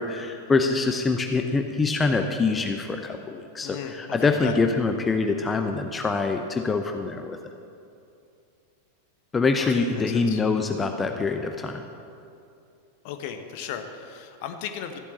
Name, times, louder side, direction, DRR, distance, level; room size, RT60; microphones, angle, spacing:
voice 1, 0.0-7.4 9.3-11.8, left 4 dB, 15° left, 5 dB, 0.7 m, -25 dB
voice 2, 3.6-4.5 9.6-10.4 13.0-15.0, left 8 dB, 45° left, 7 dB, 1.1 m, -36 dB
14.0 x 8.3 x 7.4 m, 2.6 s
figure-of-eight pair, 90°, 0 cm